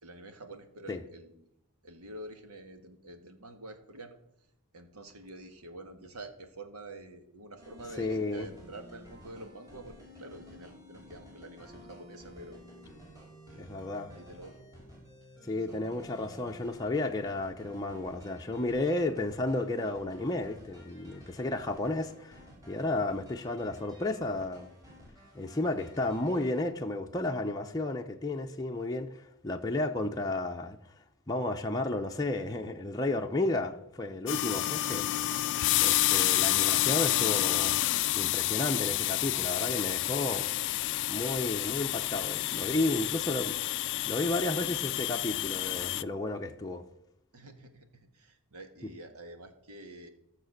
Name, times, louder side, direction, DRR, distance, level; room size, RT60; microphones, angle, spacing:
voice 1, 0.0-1.3 1.8-4.2 4.7-12.6 13.5-13.7 14.1-14.6 15.7-15.8 36.0-36.1 47.3-47.9 48.1-50.1, right 1 dB, 80° right, 1.7 m, -47 dB
sound 1, 7.6-26.7, equal, 15° right, 4.6 m, -53 dB
voice 2, 8.0-8.5 13.6-14.1 15.4-22.4 22.7-24.7 25.3-30.8 31.3-35.1 35.8-37.9 38.1-40.5 41.1-43.6 44.1-46.8 48.8-48.9, left 2 dB, 15° left, 0.7 m, -32 dB
sound 2, 34.3-46.0, left 15 dB, 55° left, 0.3 m, -29 dB
15.0 x 6.8 x 6.5 m
head